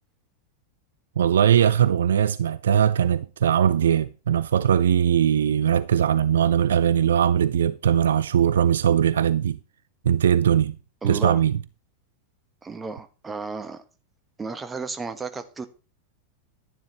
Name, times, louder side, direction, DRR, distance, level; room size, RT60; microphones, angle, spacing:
voice 1, 1.2-9.6 10.0-10.8 11.0-11.5, right 9 dB, 65° right, 0.4 m, -20 dB
voice 2, 11.0-11.4 12.6-13.8 14.4-15.7, right 4 dB, 15° right, 1.3 m, -33 dB
12.0 x 10.5 x 3.1 m
figure-of-eight pair, 90°, 0 cm